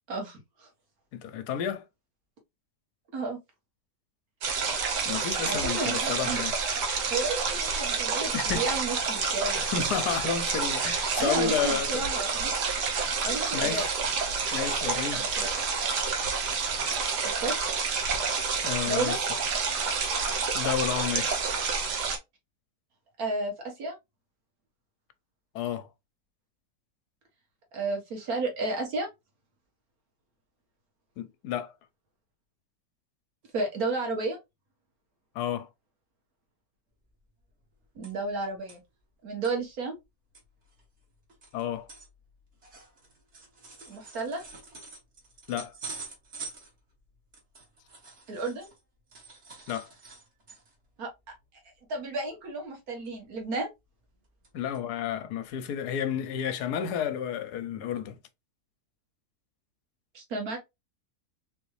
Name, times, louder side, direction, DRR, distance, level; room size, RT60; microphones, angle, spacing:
voice 1, 0.1-0.7 3.1-3.4 5.4-6.4 7.1-9.6 11.2-12.5 13.2-13.9 15.1-15.5 17.4-17.6 18.9-19.2 23.2-24.0 27.7-29.1 33.5-34.4 38.0-38.8 39.2-40.0 43.9-44.4 48.3-48.7 51.0-51.1 51.9-53.7 60.1-60.6, right 3 dB, 65° right, 1.9 m, -32 dB
voice 2, 1.1-1.8 5.1-6.5 8.3-8.7 9.6-12.1 13.5-13.9 14.5-15.2 18.6-19.2 20.5-21.4 25.5-25.9 31.2-31.7 35.3-35.7 41.5-41.9 45.5-45.7 49.7-49.9 54.5-58.2, left 8 dB, 80° left, 1.2 m, -31 dB
sound 1, 4.4-22.2, right 5 dB, 85° right, 1.5 m, -29 dB
sound 2, 37.1-37.2 37.4-38.4 38.7-38.8 39.2-39.5 40.0-40.1 40.3-48.8 49.1-50.9 51.3-51.4 51.7-52.0 53.0-53.6 54.0-54.5 54.7-54.8 55.5-55.6, right 4 dB, 45° right, 1.6 m, -47 dB
3.9 x 3.5 x 3.2 m
omnidirectional pair, 1.7 m